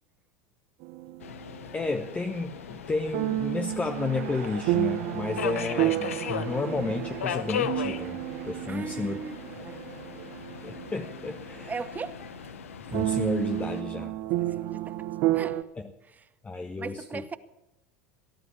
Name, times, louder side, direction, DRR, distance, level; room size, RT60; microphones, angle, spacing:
sound 1, 0.8-2.1 3.1-11.9 12.2-12.3 12.9-15.6, right 15 dB, 55° right, 0.8 m, -31 dB
Subway metro underground, 1.2-13.8, left 8 dB, 80° left, 0.8 m, -38 dB
voice 1, 1.7-8.2 8.4-9.2 10.6-11.7 12.9-14.2 16.4-17.2, left 3 dB, 20° left, 1.0 m, -32 dB
sound 2, 2.5-12.5, right 8 dB, 75° right, 2.0 m, -49 dB
voice 2, 8.7-9.8 11.7-12.2 14.5-15.7 16.1-16.3 16.8-17.4, right 5 dB, 20° right, 0.8 m, -38 dB
18.0 x 11.0 x 7.0 m
hypercardioid pair, 85°, 7 cm